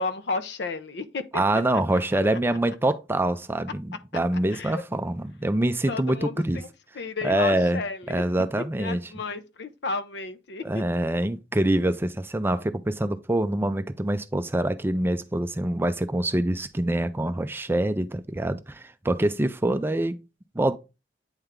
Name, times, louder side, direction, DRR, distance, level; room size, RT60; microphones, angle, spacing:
voice 1, 0.0-1.4 2.1-2.2 4.5-4.8 5.9-6.7 6.9-8.2 8.8-10.8, left 3 dB, 65° left, 0.6 m, -32 dB
voice 2, 1.3-6.6 7.2-7.8 8.1-9.0 10.6-20.2 20.6-20.8, right 1 dB, 15° right, 0.4 m, -25 dB
8.9 x 3.4 x 3.6 m
head